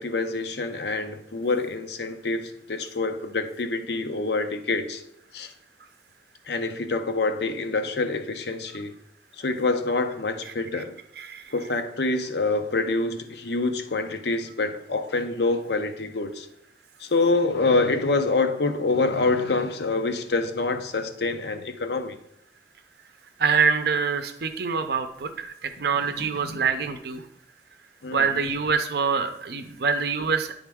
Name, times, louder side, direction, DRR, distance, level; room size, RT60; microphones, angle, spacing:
voice 1, 0.0-5.0 5.3-5.5 6.5-8.9 9.4-10.9 11.5-16.5 17.0-22.2 25.9-26.6 28.0-28.3, left 3 dB, 65° left, 0.7 m, -26 dB
voice 2, 23.4-27.2 28.1-30.5, right 5 dB, 60° right, 0.6 m, -25 dB
10.0 x 3.6 x 3.5 m
head